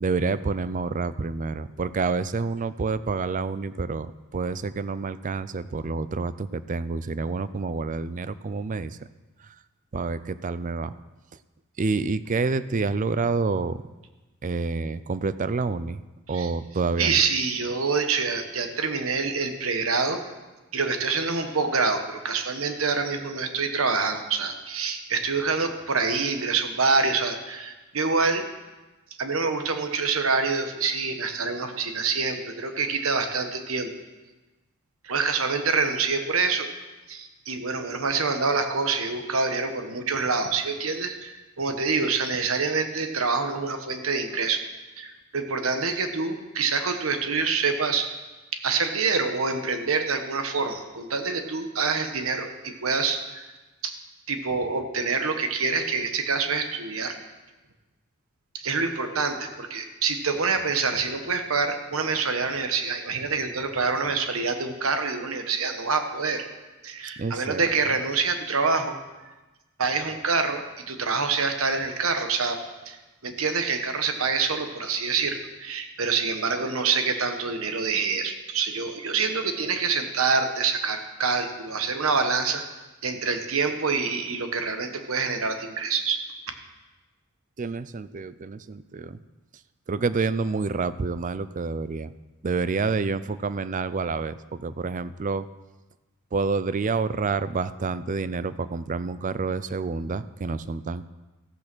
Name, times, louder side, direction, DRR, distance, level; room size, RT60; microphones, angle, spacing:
voice 1, 0.0-9.1 9.9-10.9 11.8-13.8 14.4-16.0 16.3-17.2 67.2-67.6 87.6-89.2 89.9-92.1 92.4-95.5 96.3-101.1, right 4 dB, 35° right, 15 dB, 0.4 m, -28 dB
voice 2, 17.0-20.2 20.7-28.4 29.2-33.9 35.0-36.7 37.1-44.6 45.0-48.1 48.5-53.4 53.8-54.0 54.3-57.1 58.5-66.5 66.8-69.0 69.8-72.6 72.8-73.0 73.2-82.6 83.0-86.2, right 4 dB, 70° right, 7 dB, 1.3 m, -26 dB
14.0 x 8.6 x 6.2 m, 1.1 s
head